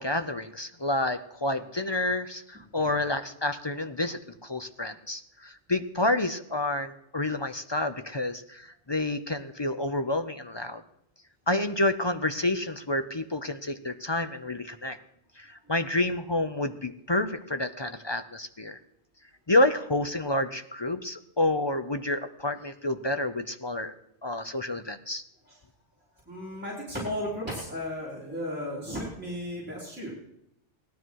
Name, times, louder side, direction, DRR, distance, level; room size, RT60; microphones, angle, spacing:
voice 1, 0.0-10.8 11.5-15.0 15.4-18.8 19.5-23.9 24.2-25.2, left 2 dB, 30° left, 9 dB, 0.6 m, -29 dB
voice 2, 26.3-30.1, equal, 10° right, -6 dB, 3.9 m, -35 dB
17.5 x 12.5 x 4.7 m, 0.81 s
omnidirectional pair, 1.2 m